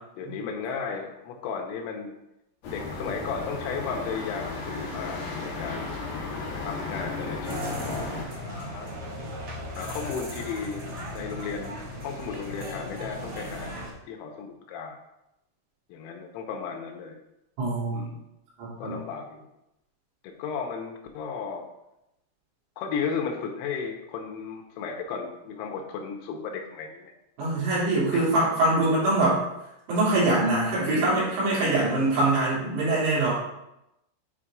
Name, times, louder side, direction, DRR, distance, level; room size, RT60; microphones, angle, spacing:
voice 1, 0.2-2.1 2.7-6.0 6.6-7.7 8.3-8.9 9.7-15.0 15.9-17.1 17.9-18.2 18.8-19.5 20.2-21.7 22.8-27.1 28.1-28.5, left 6 dB, 85° left, 2 dB, 3.4 m, -35 dB
sound 1, 2.6-8.2, left 3 dB, 60° left, 3.6 m, -34 dB
sound 2, 7.4-13.9, equal, 50° right, 1.9 m, -37 dB
voice 2, 17.6-18.1 18.6-19.0 27.4-29.4 29.9-33.3, right 2 dB, 75° right, -8 dB, 5.3 m, -23 dB
11.5 x 4.7 x 2.5 m, 0.88 s
omnidirectional pair, 6.0 m